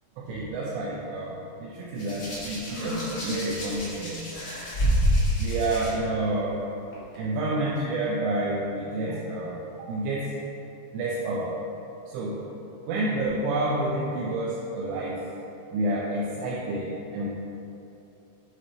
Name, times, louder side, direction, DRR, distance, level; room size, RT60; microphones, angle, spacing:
voice 1, 0.2-4.2 5.4-6.6 7.2-10.4 10.9-11.5 12.1-12.4 12.9-15.2 15.7-17.3, right 2 dB, 85° right, -5 dB, 3.0 m, -29 dB
Hands, 2.0-5.9 6.9-7.2, equal, 55° left, 1.5 m, -27 dB
8.0 x 7.8 x 2.9 m, 2.9 s
omnidirectional pair, 5.0 m